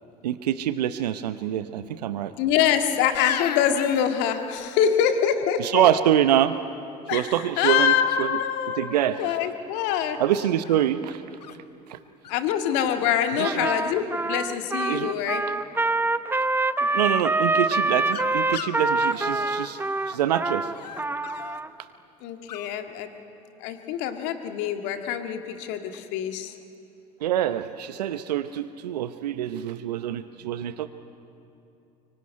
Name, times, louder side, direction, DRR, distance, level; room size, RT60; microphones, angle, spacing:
voice 1, 0.2-2.3 5.6-6.6 7.1-8.3 8.8-9.2 10.2-11.2 11.9-12.0 13.4-13.7 14.9-15.1 16.8-20.7 27.2-30.9, right 11 dB, 75° right, 12 dB, 0.7 m, -25 dB
voice 2, 2.4-5.9 7.1-10.2 12.3-15.4 22.2-23.1 23.6-26.6, left 9 dB, 60° left, 6 dB, 1.9 m, -25 dB
sound 1, 3.1-4.9 8.1-8.5 9.2-10.0 10.6-11.6 12.2-12.4 12.6-13.1 13.4-14.0 17.7-20.2 20.7-21.6 22.5-22.7, left 9 dB, 80° left, 0.9 m, -37 dB
Trumpet, 13.4-21.7, right 2 dB, 10° right, 0.7 m, -25 dB
24.0 x 23.5 x 9.6 m, 2.8 s
figure-of-eight pair, 65°, 21 cm